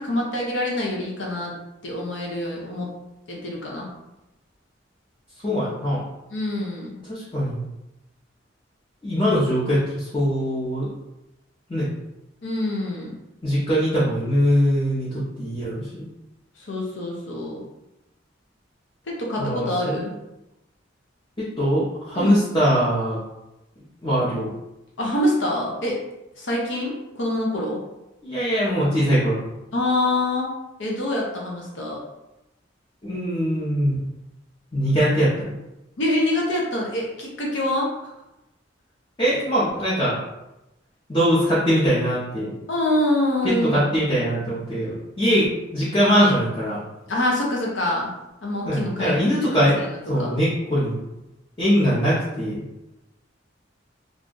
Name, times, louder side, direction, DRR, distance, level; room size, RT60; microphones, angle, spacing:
voice 1, 0.0-1.5 1.8-2.9 3.3-3.9 6.3-7.0 12.4-13.1 16.6-17.6 19.1-20.1 22.1-22.4 25.0-26.0 26.4-27.8 29.7-30.5 30.8-32.0 36.0-38.1 42.7-43.8 47.1-48.1 48.4-50.3, left 1 dB, 70° left, -3 dB, 0.7 m, -25 dB
voice 2, 5.4-6.0 7.1-7.6 9.0-10.9 11.7-11.9 13.4-15.1 15.4-16.0 19.4-19.9 21.4-23.2 24.0-24.5 28.2-29.4 33.0-34.0 34.7-35.5 39.2-40.2 41.1-42.5 43.4-45.5 45.7-46.8 48.6-51.0 51.6-52.6, equal, 25° left, -9 dB, 0.7 m, -22 dB
2.6 x 2.3 x 3.7 m, 0.93 s
head